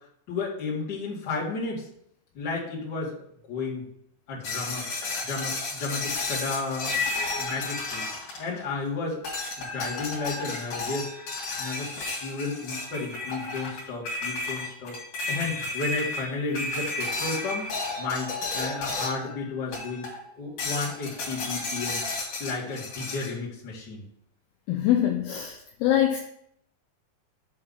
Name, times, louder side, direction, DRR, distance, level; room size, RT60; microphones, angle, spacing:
voice 1, 0.3-1.9 2.3-3.2 3.5-3.9 4.3-4.9 5.2-6.9 7.4-8.1 8.4-9.2 9.6-11.1 11.6-14.9 15.3-17.7 18.0-20.1 20.4-22.0 22.4-24.0, left 3 dB, 35° left, -6 dB, 2.0 m, -32 dB
sound 1, 4.4-8.8 9.2-19.3 19.7-20.2 20.6-23.3, left 3 dB, 55° left, 3.3 m, -32 dB
voice 2, 24.7-26.2, left 11 dB, 80° left, 2 dB, 2.2 m, -24 dB
7.9 x 3.6 x 5.4 m, 0.72 s
omnidirectional pair, 4.7 m